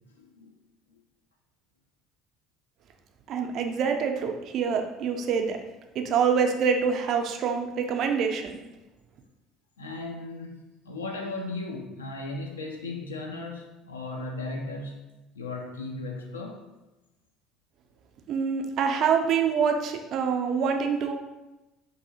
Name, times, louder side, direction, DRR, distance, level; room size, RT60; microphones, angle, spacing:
voice 1, 0.2-0.5 9.8-15.0 15.3-16.6, left 2 dB, 85° left, 2 dB, 0.3 m, -36 dB
voice 2, 3.3-5.6 6.0-8.5 18.3-21.1, right 6 dB, 50° right, 4 dB, 0.3 m, -26 dB
2.6 x 2.6 x 2.7 m, 1.0 s
figure-of-eight pair, 60°, 0 cm